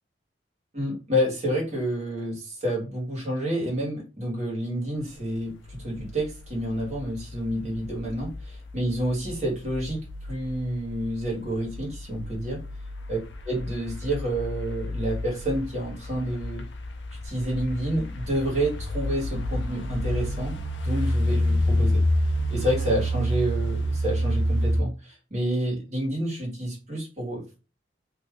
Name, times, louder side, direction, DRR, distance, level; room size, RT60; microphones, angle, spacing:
voice 1, 0.7-8.4 8.7-12.6 13.1-13.2 13.5-16.7 17.2-22.0 22.5-27.6, right 1 dB, 40° right, -3 dB, 1.4 m, -29 dB
sound 1, 5.7-24.8, equal, 75° left, 0.5 m, -29 dB
2.7 x 2.6 x 3.5 m, 0.32 s
head